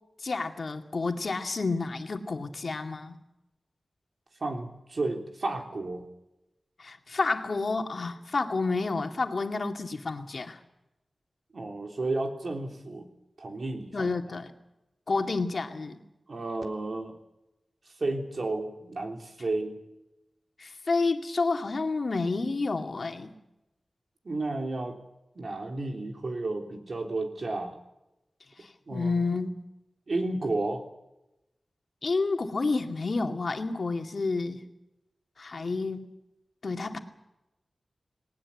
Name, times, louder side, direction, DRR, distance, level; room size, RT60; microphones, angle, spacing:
voice 1, 0.2-3.2 6.8-10.6 13.9-14.5 15.1-16.0 20.6-23.3 28.9-29.5 32.0-34.6 35.4-36.1 36.6-37.0, left 3 dB, 60° left, 5 dB, 2.2 m, -29 dB
voice 2, 4.4-6.1 11.5-13.1 13.4-14.1 16.3-17.1 18.0-19.8 24.2-25.0 25.4-27.8 28.9-29.2 30.1-30.8, right 2 dB, 60° right, 3 dB, 3.5 m, -32 dB
19.0 x 19.0 x 8.6 m, 0.92 s
wide cardioid pair, 80°, 0 cm